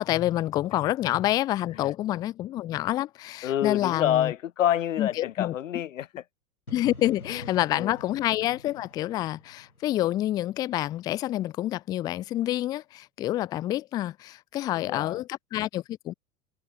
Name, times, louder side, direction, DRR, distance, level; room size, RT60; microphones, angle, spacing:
voice 1, 0.0-4.3 5.0-5.5 6.7-16.1, left 14 dB, 10° left, 0.3 m, -28 dB
voice 2, 3.4-6.1 7.3-7.5 7.8-7.9 14.8-15.2, left 11 dB, 65° left, 1.5 m, -27 dB
sound 1, 6.7-10.5, left 1 dB, 90° left, 8.0 m, -47 dB
figure-of-eight pair, 90°, 42 cm